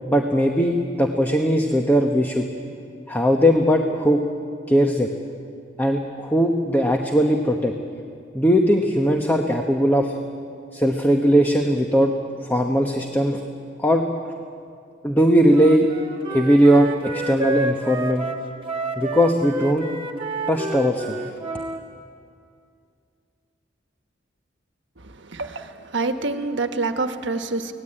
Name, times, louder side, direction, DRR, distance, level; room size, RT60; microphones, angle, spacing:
voice 1, 0.1-2.4 3.1-4.2 4.7-5.1 5.8-7.7 8.3-10.2 10.7-12.1 12.4-13.4 13.8-14.0 15.0-15.9 16.3-18.3 19.0-19.9 20.5-21.3, equal, 10° left, 3 dB, 1.1 m, -19 dB
Wind instrument woodwind instrument, 15.5-21.8, right 3 dB, 30° right, 1.7 m, -30 dB
voice 2, 25.0-27.7, right 3 dB, 70° right, 7 dB, 1.4 m, -27 dB
25.0 x 18.0 x 8.8 m, 2.4 s
head